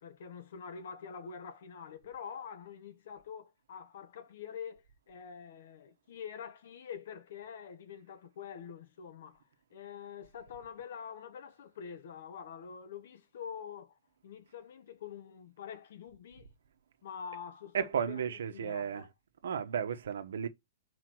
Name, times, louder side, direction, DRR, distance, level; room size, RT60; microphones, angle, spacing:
voice 1, 0.0-9.4 9.7-16.5 17.0-19.1, left 7 dB, 60° left, 1.2 m, -46 dB
voice 2, 17.7-19.1 19.4-20.5, right 7 dB, 75° right, 1.2 m, -34 dB
4.9 x 4.8 x 6.1 m
hypercardioid pair, 150°, 0 cm